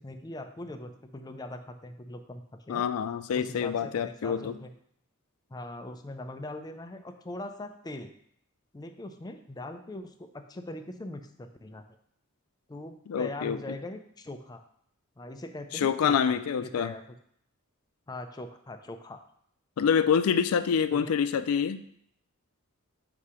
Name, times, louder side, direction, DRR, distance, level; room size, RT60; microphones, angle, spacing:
voice 1, 0.0-2.9 3.3-4.7 5.5-8.1 8.7-11.9 12.7-14.6 15.2-17.0 18.1-19.2 20.9-21.1, left 1 dB, 20° left, 7 dB, 0.4 m, -41 dB
voice 2, 2.7-4.5 13.1-13.6 15.7-16.9 19.8-21.8, left 7 dB, 85° left, 11 dB, 0.4 m, -26 dB
7.0 x 2.8 x 4.8 m, 0.68 s
head